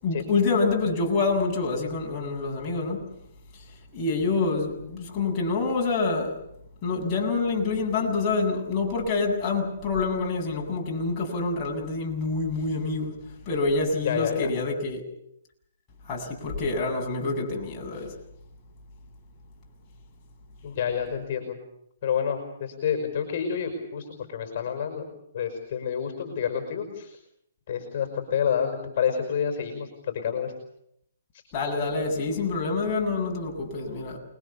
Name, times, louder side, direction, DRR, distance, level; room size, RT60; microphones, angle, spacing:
voice 1, 0.0-3.0 3.9-6.4 6.8-13.2 13.5-15.0 16.1-18.1 31.5-34.2, left 3 dB, 25° left, -2 dB, 8.0 m, -27 dB
voice 2, 14.0-14.5 20.6-21.6 22.0-25.1 25.3-27.2 27.7-30.5, left 7 dB, 45° left, 5 dB, 5.6 m, -28 dB
29.0 x 22.0 x 7.2 m, 0.76 s
hypercardioid pair, 155°, 0 cm